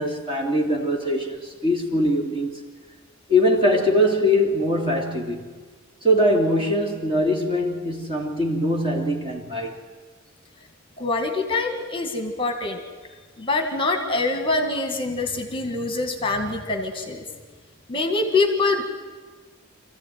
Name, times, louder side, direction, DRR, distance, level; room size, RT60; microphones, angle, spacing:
voice 1, 0.0-2.6 3.3-5.5 6.0-9.8, equal, 25° right, 1 dB, 2.8 m, -22 dB
voice 2, 11.0-12.8 13.4-17.2 17.9-18.8, left 3 dB, 25° left, 5 dB, 1.8 m, -24 dB
25.5 x 14.5 x 9.3 m, 1.4 s
head